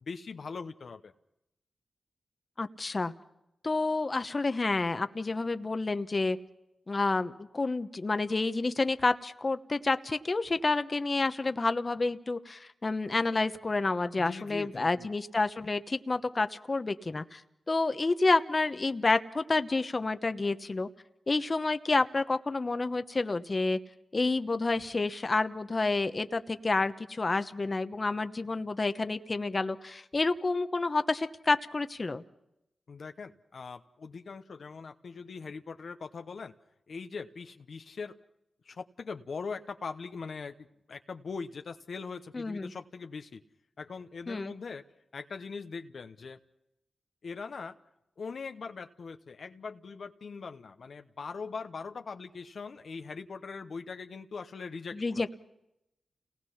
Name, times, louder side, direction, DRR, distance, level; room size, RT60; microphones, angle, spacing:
voice 1, 0.0-1.1 14.2-15.1 32.9-36.5 36.9-38.1 38.6-43.4 43.8-44.8 45.1-46.4 47.2-47.8 48.2-55.3, left 5 dB, 70° left, 6 dB, 0.9 m, -41 dB
voice 2, 2.6-3.1 3.6-6.4 6.9-17.4 17.7-20.9 21.3-23.8 24.1-32.2 42.3-42.7 44.3-44.5 54.9-55.3, left 3 dB, 40° left, 10 dB, 1.0 m, -29 dB
29.5 x 19.0 x 5.8 m, 0.86 s
cardioid pair, 50°, 0 cm